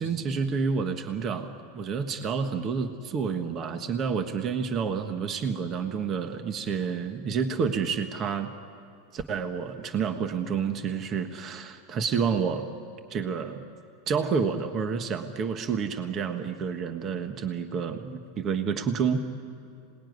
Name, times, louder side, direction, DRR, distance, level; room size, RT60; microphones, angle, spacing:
voice 1, 0.0-8.5 9.1-12.7 13.1-13.7 14.1-19.2, right 6 dB, 35° right, 7 dB, 1.5 m, -29 dB
26.5 x 20.0 x 9.6 m, 2.4 s
supercardioid pair, 135°, 0 cm